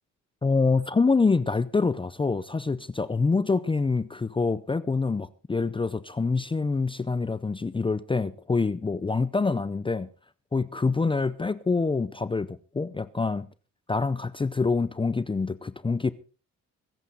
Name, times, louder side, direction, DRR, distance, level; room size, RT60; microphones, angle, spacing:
voice 1, 0.4-10.1 10.5-13.5 13.9-16.1, left 4 dB, 15° left, 16 dB, 0.6 m, -26 dB
24.5 x 8.2 x 4.0 m, 0.36 s
cardioid pair, 90°, 30 cm